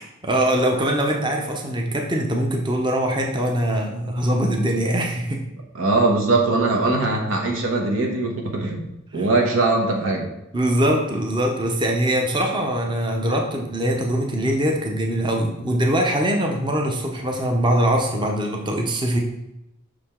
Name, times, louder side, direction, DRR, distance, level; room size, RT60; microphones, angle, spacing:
voice 1, 0.0-5.4 9.1-9.3 10.5-19.2, right 1 dB, 20° right, 1 dB, 0.7 m, -22 dB
voice 2, 5.8-8.9 9.1-10.3, right 2 dB, 75° right, 1 dB, 1.1 m, -21 dB
6.1 x 5.0 x 3.6 m, 0.91 s
head